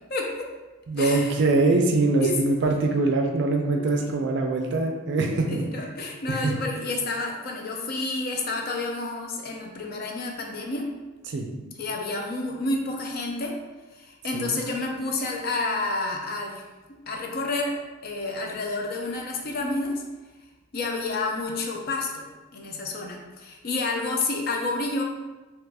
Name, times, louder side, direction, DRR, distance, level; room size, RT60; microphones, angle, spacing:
voice 1, 0.1-0.5 1.0-1.3 2.2-2.4 3.7-4.1 5.5-10.9 11.8-13.6 14.0-16.6 16.9-20.0 20.7-22.3 22.5-25.0, left 2 dB, 45° left, 1 dB, 0.4 m, -29 dB
voice 2, 0.9-5.6 6.3-6.5 11.3-11.5 14.3-14.6, right 3 dB, 55° right, 3 dB, 0.4 m, -23 dB
2.9 x 2.4 x 3.4 m, 1.2 s
head